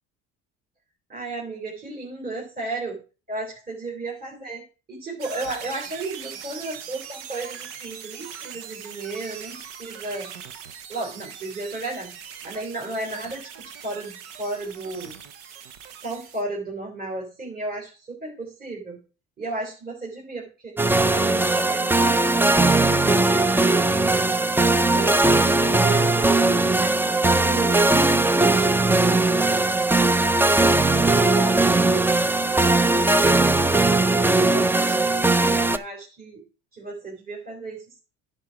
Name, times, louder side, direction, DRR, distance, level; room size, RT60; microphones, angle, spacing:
voice 1, 1.1-3.0 3.3-10.3 10.9-12.2 12.4-15.2 16.0-19.0 19.4-20.8 21.1-24.3 24.9-27.8 28.4-29.5 30.9-36.4 36.7-38.0, right 2 dB, 25° right, -3 dB, 3.7 m, -34 dB
sound 1, 5.2-16.4, right 8 dB, 90° right, 1.2 m, -41 dB
sound 2, 20.8-35.8, right 2 dB, 5° right, 0.5 m, -19 dB
10.5 x 4.9 x 5.9 m, 0.34 s
supercardioid pair, 80°, 34 cm